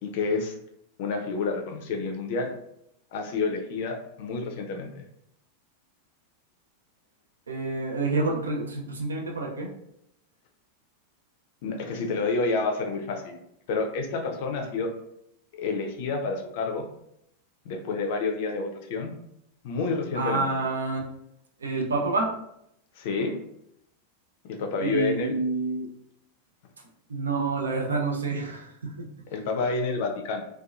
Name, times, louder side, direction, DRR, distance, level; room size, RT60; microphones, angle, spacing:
voice 1, 0.0-0.5 1.0-2.5 3.1-5.0 11.6-13.3 13.7-14.9 15.5-16.9 17.6-19.1 19.6-20.5 23.0-23.4 24.4-25.4 29.3-30.4, left 3 dB, 50° left, 3 dB, 0.4 m, -29 dB
voice 2, 7.5-9.7 20.1-21.0 21.6-22.3 24.8-25.9 27.1-29.1, right 3 dB, 70° right, 0 dB, 0.5 m, -28 dB
2.7 x 2.2 x 2.3 m, 0.76 s
figure-of-eight pair, 90°, 0 cm